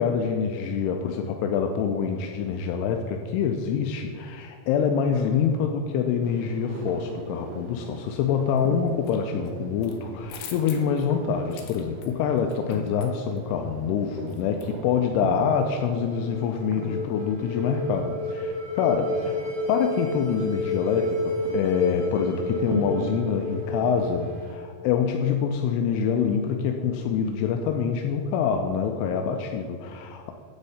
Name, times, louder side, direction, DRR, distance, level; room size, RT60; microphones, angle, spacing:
voice 1, 0.0-30.3, left 7 dB, 85° left, 3 dB, 2.6 m, -26 dB
sound 1, 6.2-24.6, right 4 dB, 85° right, 3.0 m, -41 dB
sound 2, 8.6-9.2 9.5-15.0, left 8 dB, 70° left, 2.6 m, -45 dB
sound 3, 15.7-24.9, left 2 dB, 50° left, 1.1 m, -31 dB
9.8 x 8.2 x 4.2 m, 2.2 s
omnidirectional pair, 4.7 m